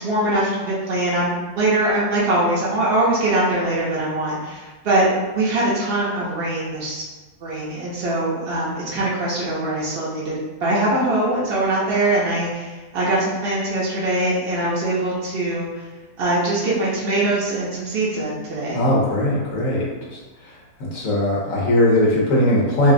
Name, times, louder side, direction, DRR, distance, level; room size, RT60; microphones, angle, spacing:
voice 1, 0.0-5.1 5.3-7.0 7.4-15.7 16.2-18.8, right 2 dB, 65° right, -7 dB, 0.6 m, -22 dB
voice 2, 18.7-19.9 20.1-20.2 20.9-22.9, left 1 dB, 65° left, -4 dB, 0.9 m, -19 dB
2.9 x 2.7 x 2.5 m, 1.3 s
omnidirectional pair, 1.7 m